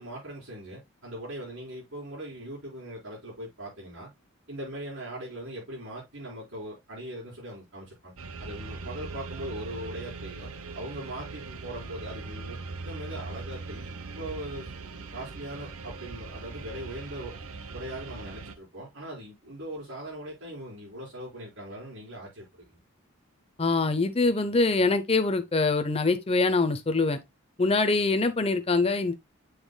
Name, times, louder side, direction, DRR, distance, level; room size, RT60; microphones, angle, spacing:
voice 1, 0.0-4.1 4.5-8.1 8.4-14.7 15.1-17.4 17.7-22.7, right 1 dB, 65° right, 5.0 m, -40 dB
sound 1, 8.2-18.6, right 4 dB, 90° right, 0.9 m, -40 dB
voice 2, 23.6-27.2 27.6-29.1, left 3 dB, 25° left, 0.7 m, -24 dB
7.3 x 6.8 x 2.2 m
head